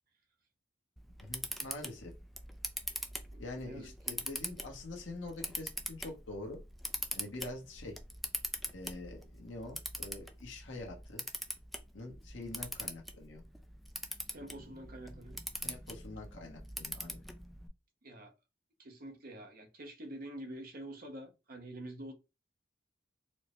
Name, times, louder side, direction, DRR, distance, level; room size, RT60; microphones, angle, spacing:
Camera, 1.0-17.7, equal, ahead, 0.3 m, -43 dB
voice 1, 1.2-2.1 3.4-6.6 7.1-8.0 8.7-11.2 11.9-13.4 15.6-17.2, left 2 dB, 80° left, 1.0 m, -45 dB
voice 2, 3.3-4.2 14.3-15.4 18.0-18.3 18.8-22.1, right 1 dB, 50° right, 0.8 m, -47 dB
4.3 x 2.1 x 3.0 m
head